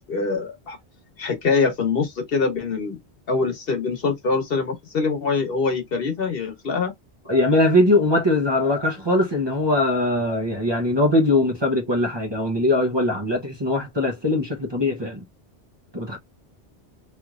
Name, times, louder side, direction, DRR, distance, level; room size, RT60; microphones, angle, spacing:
voice 1, 0.1-0.8 1.2-3.0 3.3-6.9, left 4 dB, 60° left, 1.2 m, -24 dB
voice 2, 7.3-15.2 15.9-16.2, left 1 dB, 25° right, 0.9 m, -21 dB
3.1 x 3.0 x 2.4 m
omnidirectional pair, 1.1 m